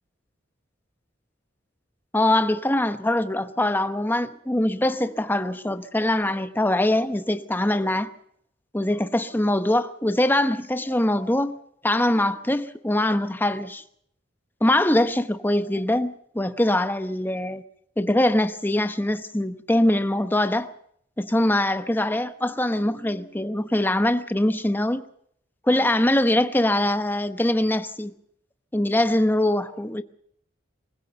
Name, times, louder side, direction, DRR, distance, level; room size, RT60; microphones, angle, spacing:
voice 1, 2.1-8.1 8.7-11.6 11.8-13.8 14.6-17.6 18.0-20.7 21.2-25.0 25.7-28.1 28.7-30.0, left 1 dB, 10° left, 0.9 m, -23 dB
24.0 x 16.0 x 6.9 m
head